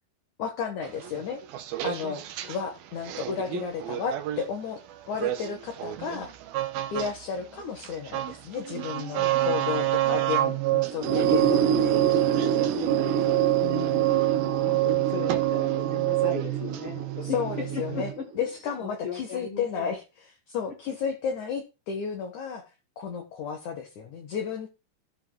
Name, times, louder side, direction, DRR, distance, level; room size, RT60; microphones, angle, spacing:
voice 1, 0.4-1.4 1.8-4.8 5.1-6.3 6.9-12.0 13.6-14.1 17.2-22.7 23.0-24.7, left 6 dB, 55° left, 4 dB, 2.4 m, -33 dB
sound 1, 0.8-2.6 3.1-4.5 5.1-7.1 7.4-18.1, right 17 dB, 70° right, 2.7 m, -27 dB
voice 2, 9.1-9.5 9.8-9.9 12.6-13.5 14.3-17.4 17.7-18.4 18.8-19.9 20.9-21.0, left 4 dB, 40° left, 0 dB, 2.3 m, -38 dB
sound 2, 10.9-18.5, right 6 dB, 90° right, 3.5 m, -29 dB
14.0 x 7.7 x 4.7 m, 0.30 s
omnidirectional pair, 4.9 m